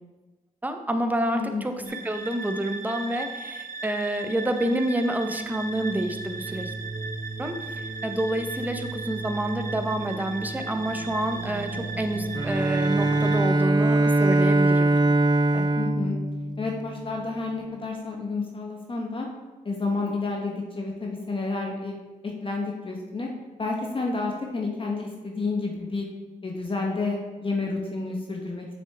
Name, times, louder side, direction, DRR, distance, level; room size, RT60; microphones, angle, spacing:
voice 1, 0.6-6.7 7.4-14.9 15.5-15.7, right 1 dB, 10° right, 5 dB, 0.8 m, -28 dB
voice 2, 1.3-1.9 15.7-16.2 16.6-19.3 19.6-22.0 22.4-23.3 23.6-26.0 26.4-28.6, left 3 dB, 35° left, 0 dB, 1.2 m, -30 dB
sound 1, 1.9-13.4, right 3 dB, 70° right, 0.8 m, -35 dB
Bowed string instrument, 12.3-17.2, right 2 dB, 30° right, 0.5 m, -22 dB
6.9 x 6.4 x 3.5 m, 1.2 s
cardioid pair, 60°, 14 cm